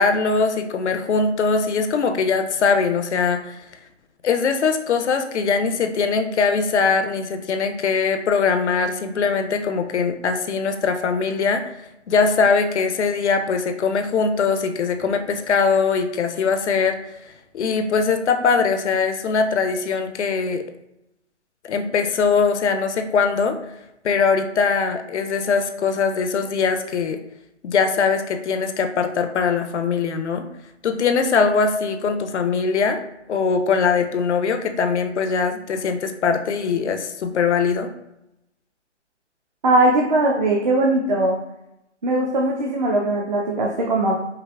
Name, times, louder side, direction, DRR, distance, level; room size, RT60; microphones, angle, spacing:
voice 1, 0.0-3.6 4.2-11.6 12.1-17.0 17.5-20.6 21.6-23.6 24.0-27.2 27.6-30.5 30.8-33.0 33.3-37.9, left 5 dB, 70° left, 7 dB, 0.5 m, -21 dB
voice 2, 39.6-41.4 42.0-44.2, right 2 dB, 40° right, -1 dB, 0.4 m, -20 dB
5.4 x 2.0 x 2.3 m, 0.86 s
hypercardioid pair, 155°, 36 cm